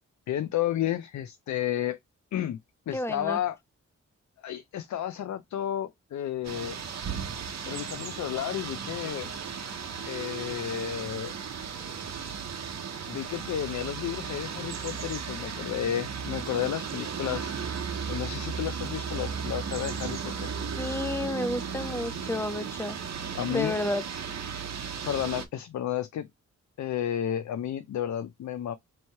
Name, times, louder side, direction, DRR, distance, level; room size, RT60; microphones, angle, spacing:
voice 1, 0.3-2.0 2.3-2.6 2.9-3.6 4.4-6.8 7.7-9.3 10.1-11.3 13.1-17.5 18.1-20.5 23.4-23.8 25.0-26.3 26.8-28.8, left 11 dB, 70° left, 0.4 m, -32 dB
voice 2, 2.9-3.4 20.8-23.0 23.5-24.0, left 1 dB, 10° left, 0.5 m, -31 dB
sound 1, 6.4-25.5, right 6 dB, 60° right, 0.8 m, -35 dB
3.1 x 2.7 x 4.4 m
wide cardioid pair, 95°, 30 cm